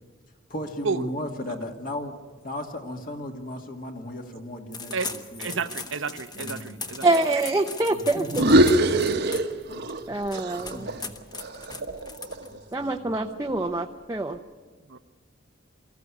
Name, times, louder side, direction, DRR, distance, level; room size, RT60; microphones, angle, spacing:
voice 1, 0.5-5.7 6.3-6.9 7.9-9.0 9.2-9.3 9.7-10.1 10.7-11.2 12.3-13.2, left 1 dB, 45° left, 4 dB, 2.1 m, -37 dB
sound 1, 4.7-12.7, left 4 dB, 20° left, 1.2 m, -39 dB
voice 2, 5.4-7.1 11.8-11.9 14.9-15.0, right 5 dB, 80° right, 12 dB, 0.9 m, -31 dB
voice 3, 7.0-8.2 10.1-10.9 12.7-14.4, right 2 dB, 15° right, 3 dB, 0.7 m, -25 dB
sound 2, 8.3-10.0 10.3-12.6, right 1 dB, 60° right, 1.1 m, -23 dB
23.5 x 14.5 x 9.7 m, 1.4 s
head